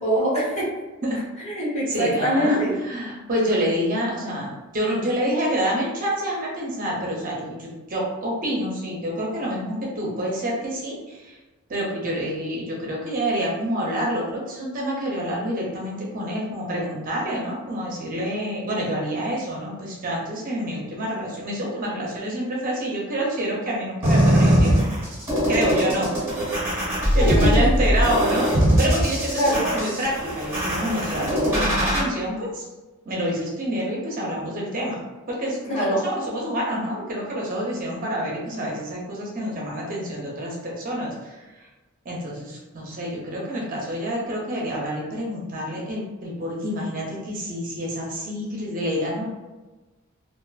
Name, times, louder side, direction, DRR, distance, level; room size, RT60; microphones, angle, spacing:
voice 1, 0.0-0.7 1.4-2.7 27.2-27.7 29.4-29.6 35.7-36.0, equal, 30° left, -8 dB, 1.0 m, -23 dB
voice 2, 1.9-2.6 2.8-11.4 11.7-24.8 25.5-26.1 26.4-26.6 27.1-32.6 33.1-35.0 35.3-41.7 42.0-49.3, equal, 40° right, -3 dB, 0.5 m, -27 dB
sound 1, 24.0-32.0, equal, 10° right, 1.2 m, -21 dB
2.4 x 2.4 x 2.3 m, 1.2 s
head